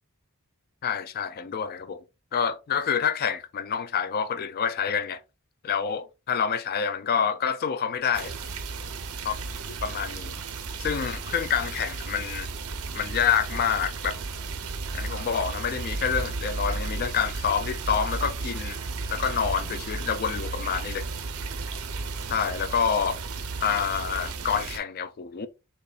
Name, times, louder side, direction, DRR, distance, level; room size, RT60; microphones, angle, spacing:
voice 1, 0.8-2.0 2.3-5.2 5.6-8.3 9.3-9.4 9.7-10.3 10.8-12.5 12.9-14.2 14.9-18.8 19.1-21.1 22.3-23.2 23.6-25.5, left 7 dB, 45° left, 0.4 m, -27 dB
sound 1, 8.1-24.8, right 4 dB, 75° right, 0.8 m, -34 dB
6.6 x 3.0 x 2.4 m
head